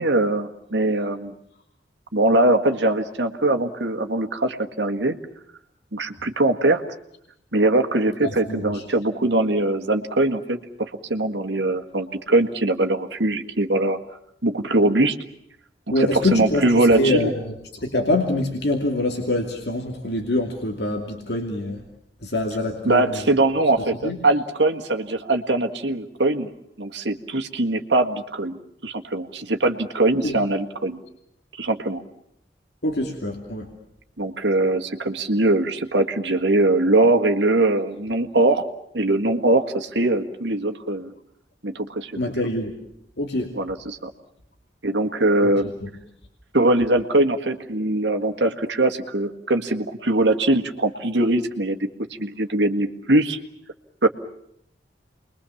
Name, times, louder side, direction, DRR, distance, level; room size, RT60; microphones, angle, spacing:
voice 1, 0.0-1.3 2.1-5.2 5.9-6.8 7.5-14.0 14.4-15.1 15.9-17.3 22.8-26.5 26.8-28.6 28.8-31.0 31.6-32.0 34.2-38.7 38.9-41.1 41.6-42.1 43.5-44.1 44.8-45.7 46.5-51.8 52.2-53.4 54.0-54.1, right 2 dB, 75° right, 6 dB, 1.8 m, -21 dB
voice 2, 8.5-8.8 15.9-16.7 17.0-17.4 17.7-21.8 22.2-23.2 24.0-24.2 30.2-30.4 32.8-33.7 42.2-42.7 43.2-43.5 45.8-45.9, left 1 dB, 65° left, 2 dB, 2.8 m, -24 dB
29.0 x 22.5 x 7.2 m, 0.74 s
head